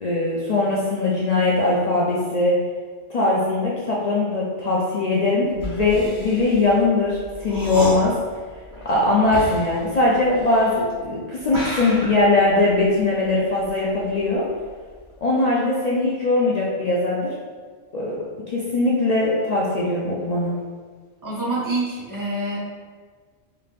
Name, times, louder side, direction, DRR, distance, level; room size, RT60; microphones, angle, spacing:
voice 1, 0.0-2.6 3.1-8.2 8.8-14.5 15.2-17.3 17.9-20.5, left 2 dB, 65° left, -6 dB, 0.4 m, -21 dB
sound 1, 5.5-11.0 11.4-14.4 14.6-15.1, equal, 15° left, 1.0 m, -33 dB
voice 2, 21.2-22.6, right 2 dB, 20° right, -6 dB, 0.6 m, -26 dB
3.6 x 3.3 x 2.4 m, 1.5 s
omnidirectional pair, 1.3 m